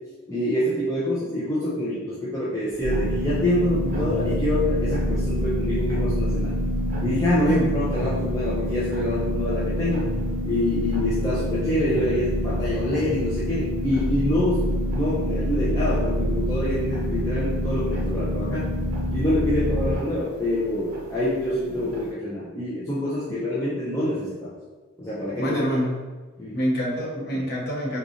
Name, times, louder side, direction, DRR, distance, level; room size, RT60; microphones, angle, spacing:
voice 1, 0.3-6.6 7.0-10.1 10.4-14.7 14.9-18.7 19.1-24.5 25.0-25.6 26.4-26.7 27.3-27.5, left 1 dB, 15° left, -9 dB, 0.5 m, -26 dB
sound 1, 2.7-22.1, right 1 dB, 45° right, 1.0 m, -40 dB
sound 2, 2.8-20.0, equal, 20° right, 0.8 m, -26 dB
voice 2, 25.4-25.9 26.5-28.0, equal, 50° left, -5 dB, 0.9 m, -26 dB
3.8 x 2.5 x 2.8 m, 1.3 s
head